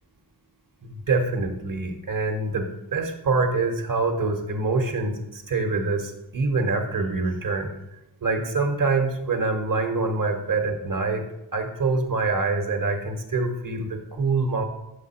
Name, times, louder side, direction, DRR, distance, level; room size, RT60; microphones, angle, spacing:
voice 1, 0.8-7.7 8.2-11.2 11.5-14.6, right 3 dB, 45° right, 5 dB, 1.1 m, -25 dB
6.0 x 5.0 x 4.3 m, 0.90 s
cardioid pair, 40°, 47 cm